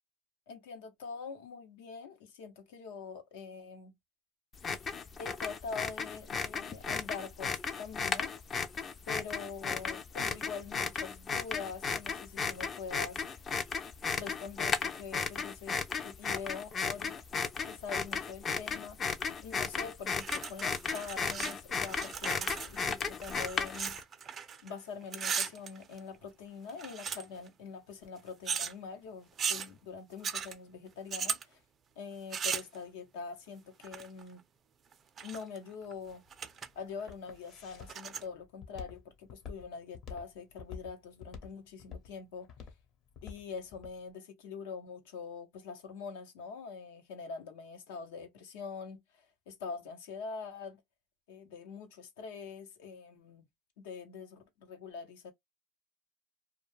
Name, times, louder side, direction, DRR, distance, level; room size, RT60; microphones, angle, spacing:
voice 1, 0.5-3.9 5.2-8.3 9.1-13.2 14.1-19.0 19.4-24.0 24.6-31.6 32.0-34.4 35.2-36.2 36.8-42.5 43.2-50.8 51.3-53.5 53.8-55.3, left 5 dB, 85° left, 0.8 m, -44 dB
sound 1, 4.5-24.0, left 5 dB, 30° left, 0.4 m, -35 dB
sound 2, 20.2-21.5 21.8-24.7 25.0-26.2 26.7-27.5 28.4-28.7 29.4-29.7 30.2-30.5 31.1-31.4 32.3-32.8 33.8-34.2 34.9-35.6 35.9-36.0 36.3-36.7 37.0-37.1 37.8-38.2, right 7 dB, 35° right, 0.4 m, -37 dB
Walk footsteps, 35.8-44.0, left 6 dB, 55° left, 0.9 m, -48 dB
2.2 x 2.2 x 3.2 m
supercardioid pair, 110°, 0 cm